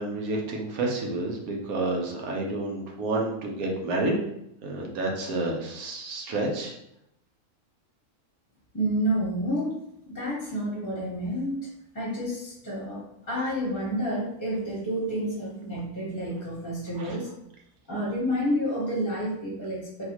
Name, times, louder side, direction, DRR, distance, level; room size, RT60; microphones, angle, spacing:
voice 1, 0.0-4.2 4.6-6.7 17.0-17.1, right 2 dB, 90° right, 0 dB, 1.2 m, -29 dB
voice 2, 8.7-9.7 10.1-11.7 11.9-17.3 17.9-20.1, equal, 15° left, -6 dB, 0.8 m, -29 dB
4.0 x 2.3 x 2.9 m, 0.78 s
omnidirectional pair, 1.5 m